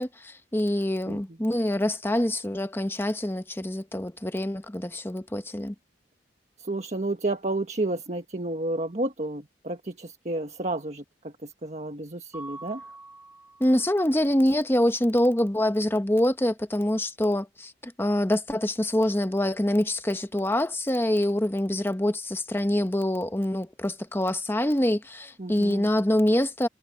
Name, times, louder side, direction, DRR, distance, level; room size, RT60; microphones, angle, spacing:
voice 1, 0.0-5.7 13.6-26.7, left 1 dB, 15° left, 1.0 m, -25 dB
voice 2, 1.1-1.4 6.6-12.8 25.4-25.9, right 2 dB, 40° right, 1.4 m, -31 dB
Mallet percussion, 12.3-14.1, right 2 dB, 10° right, 5.7 m, -45 dB
head